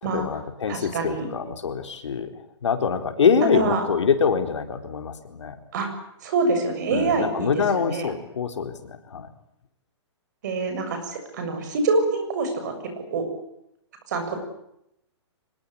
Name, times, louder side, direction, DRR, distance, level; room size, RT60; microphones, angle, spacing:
voice 1, 0.0-2.3 2.6-5.5 6.9-9.3, left 6 dB, 75° left, 7 dB, 4.2 m, -24 dB
voice 2, 0.7-1.3 3.5-3.8 5.7-5.9 6.2-8.1 10.4-13.3 14.1-14.4, right 3 dB, 40° right, 7 dB, 7.1 m, -26 dB
24.5 x 21.5 x 8.7 m, 0.80 s
hypercardioid pair, 175°, 15 cm